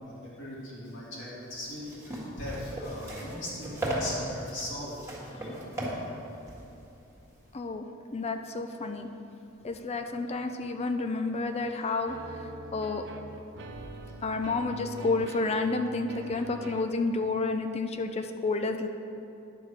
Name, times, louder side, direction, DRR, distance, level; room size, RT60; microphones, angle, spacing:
voice 1, 0.0-5.0 13.7-13.8, left 1 dB, 65° left, -7 dB, 2.1 m, -39 dB
sound 1, 1.5-7.5, right 1 dB, 15° right, 1.8 m, -37 dB
voice 2, 7.5-7.9 8.1-9.1 9.6-13.1 14.2-18.9, left 3 dB, 30° left, 7 dB, 0.4 m, -30 dB
sound 2, 12.1-17.0, right 2 dB, 60° right, 0.6 m, -43 dB
10.5 x 6.9 x 4.7 m, 2.8 s
head